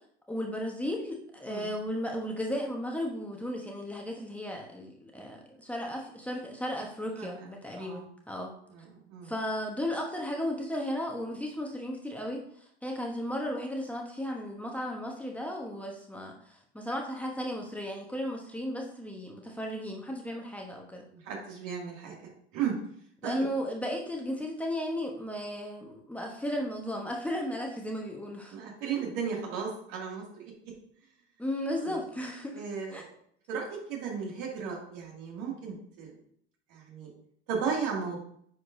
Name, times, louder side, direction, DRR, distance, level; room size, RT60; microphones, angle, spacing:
voice 1, 0.3-8.5 9.2-21.1 23.2-28.6 31.4-32.6 32.9-33.0, equal, 5° left, -1 dB, 1.2 m, -35 dB
voice 2, 8.7-9.3 21.1-22.7 23.2-23.4 28.5-30.5 31.8-32.0 32.5-33.1 33.5-36.2 36.7-37.1 37.5-38.2, right 6 dB, 60° right, -1 dB, 2.5 m, -35 dB
9.8 x 4.6 x 2.7 m, 0.65 s
hypercardioid pair, 85°, 33 cm